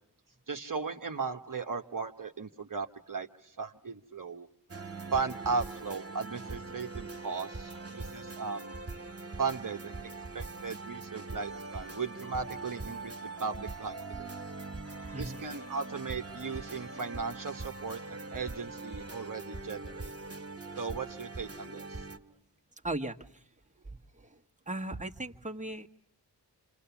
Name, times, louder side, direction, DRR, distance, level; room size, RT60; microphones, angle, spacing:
voice 1, 0.5-4.5 5.1-8.7 9.4-14.3 15.2-20.1 20.8-22.0, right 5 dB, 50° right, 4 dB, 1.2 m, -37 dB
sound 1, 4.7-22.2, right 3 dB, 35° right, 2.0 m, -42 dB
voice 2, 14.5-15.4 15.7-15.8 22.8-23.4 24.1-24.4 24.7-25.9, right 1 dB, 20° right, 3 dB, 1.5 m, -38 dB
28.5 x 27.0 x 7.1 m, 0.70 s
wide cardioid pair, 65°, 42 cm